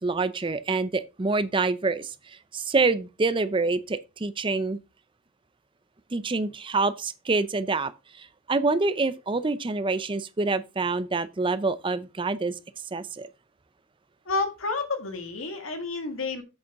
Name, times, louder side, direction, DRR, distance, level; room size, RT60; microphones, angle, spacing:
voice 1, 0.0-2.1 2.5-4.8 6.1-7.9 8.2-12.5 12.9-13.3, right 3 dB, 25° right, 0.5 m, -26 dB
voice 2, 14.2-16.4, left 3 dB, 80° left, 1.8 m, -30 dB
8.0 x 6.8 x 3.5 m
head